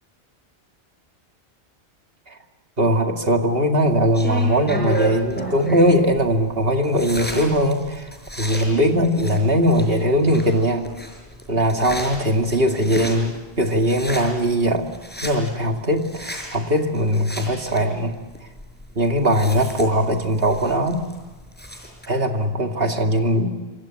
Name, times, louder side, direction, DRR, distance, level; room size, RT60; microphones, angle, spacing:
voice 1, 2.8-8.1 8.4-10.9 11.5-14.9 15.2-18.2 19.0-21.0 22.1-23.5, equal, 60° right, 3 dB, 2.7 m, -20 dB
sound 1, 3.9-22.1, equal, 10° left, 5.3 m, -34 dB
27.5 x 25.5 x 7.5 m, 1.3 s
omnidirectional pair, 1.1 m